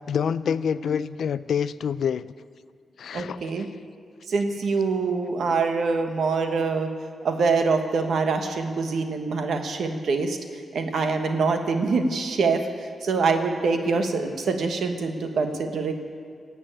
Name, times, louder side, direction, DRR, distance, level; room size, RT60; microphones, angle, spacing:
voice 1, 0.1-2.3 3.0-3.7, left 7 dB, 80° left, 16 dB, 0.4 m, -27 dB
voice 2, 3.1-3.7 4.3-6.9 7.2-10.4 10.7-12.6 13.0-15.9, right 4 dB, 75° right, 5 dB, 1.3 m, -24 dB
16.5 x 8.1 x 8.8 m, 2.2 s
cardioid pair, 85°, 0 cm